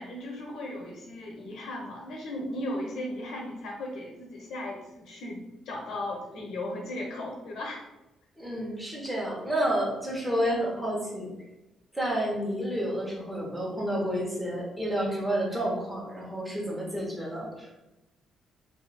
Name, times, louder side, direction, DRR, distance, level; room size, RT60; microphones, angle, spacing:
voice 1, 0.0-7.8, left 1 dB, 80° left, -1 dB, 0.8 m, -36 dB
voice 2, 8.4-11.3 11.9-17.7, equal, 10° right, -3 dB, 1.2 m, -30 dB
2.7 x 2.6 x 4.1 m, 0.98 s
cardioid pair, 90°, 0 cm